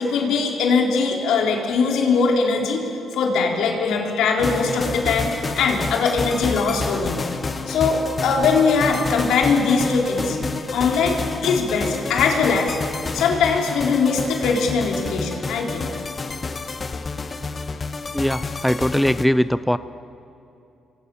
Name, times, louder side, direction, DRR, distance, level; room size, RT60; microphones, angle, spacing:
voice 1, 0.0-7.3 7.7-10.4 10.7-12.8 13.1-15.9, left 4 dB, 85° left, 1 dB, 4.1 m, -21 dB
sound 1, 4.4-19.3, left 4 dB, 30° left, 1.3 m, -29 dB
voice 2, 18.1-19.8, equal, ahead, 14 dB, 0.5 m, -20 dB
28.0 x 24.0 x 7.2 m, 2.7 s
cardioid pair, 105°, 0 cm